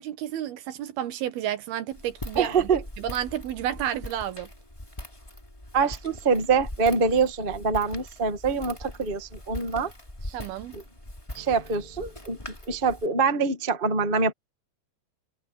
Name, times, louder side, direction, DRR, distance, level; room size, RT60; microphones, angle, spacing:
voice 1, 0.0-2.7 3.0-4.5 10.3-10.8, right 11 dB, 75° right, 3.3 m, -31 dB
Walk footsteps, 1.9-13.1, left 1 dB, 10° left, 2.7 m, -42 dB
voice 2, 2.3-2.8 5.7-9.9 10.3-10.4 10.7-10.8 11.3-12.4 12.7-14.3, right 5 dB, 45° right, 0.6 m, -25 dB
omnidirectional pair, 4.5 m